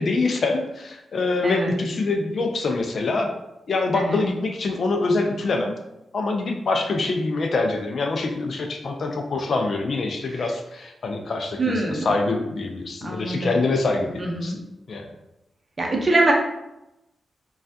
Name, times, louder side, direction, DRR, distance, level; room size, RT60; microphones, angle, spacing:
voice 1, 0.0-3.3 3.7-5.7 6.1-14.6 14.9-15.1, left 3 dB, 55° left, 3 dB, 0.4 m, -25 dB
voice 2, 3.9-4.3 10.3-10.4 11.6-12.0 13.0-13.6 14.2-14.6 15.8-16.3, right 2 dB, 40° right, 0 dB, 0.6 m, -24 dB
3.2 x 2.3 x 2.6 m, 0.90 s
cardioid pair, 85°, 0 cm